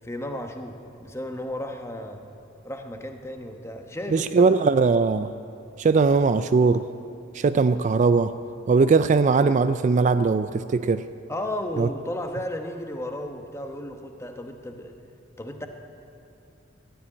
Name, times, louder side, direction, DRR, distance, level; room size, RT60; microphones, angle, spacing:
voice 1, 0.0-2.2 2.6-4.5 11.3-14.9 15.4-15.7, left 1 dB, 15° left, 4 dB, 1.0 m, -34 dB
voice 2, 4.1-5.3 5.8-6.9 7.3-8.3 8.7-11.0 11.8-11.9, right 4 dB, 40° right, 12 dB, 0.3 m, -20 dB
14.0 x 10.5 x 9.7 m, 2.7 s
head